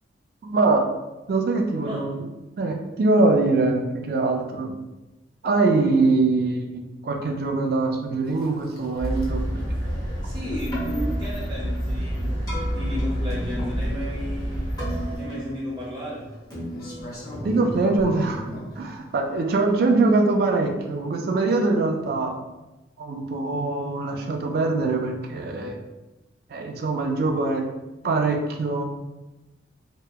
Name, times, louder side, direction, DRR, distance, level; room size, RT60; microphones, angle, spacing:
voice 1, 0.4-0.9 1.3-2.2 2.6-4.8 5.4-9.4 9.8-9.9 17.4-18.5 18.8-22.3 23.0-25.8 26.5-27.7 28.0-28.8, right 3 dB, 50° right, 2 dB, 0.3 m, -23 dB
sound 1, 8.3-20.1, left 1 dB, 50° left, 0.6 m, -42 dB
sound 2, 9.0-15.2, equal, 80° left, 0.7 m, -28 dB
voice 2, 9.9-16.3, left 1 dB, 25° right, -6 dB, 0.7 m, -34 dB
Keyboard (musical), 10.5-18.7, right 1 dB, 20° left, 0.7 m, -37 dB
2.7 x 2.1 x 2.3 m, 1.0 s
head